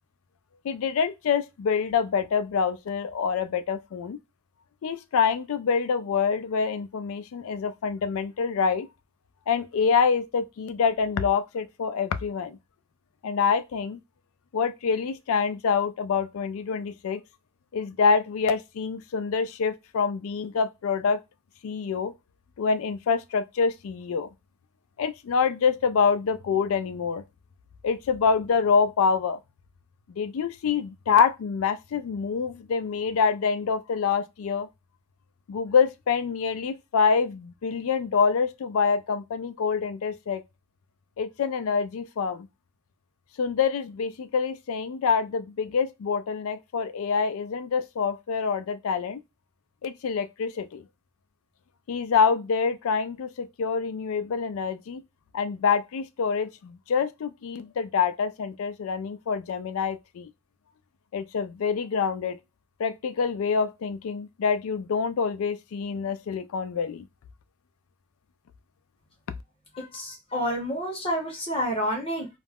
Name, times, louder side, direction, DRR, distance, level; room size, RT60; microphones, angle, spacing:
voice 1, 0.6-4.2 4.8-8.9 9.5-12.6 13.2-14.0 14.5-17.2 17.7-21.2 21.6-22.1 22.6-24.3 25.0-27.2 27.8-29.4 30.2-34.7 35.5-40.4 41.2-42.5 43.4-49.2 49.8-50.8 51.9-55.0 55.3-60.3 61.1-62.4 62.8-67.1, left 5 dB, 70° left, 0.3 m, -26 dB
voice 2, 69.7-72.3, equal, 25° left, 0.7 m, -29 dB
2.3 x 2.0 x 3.4 m
head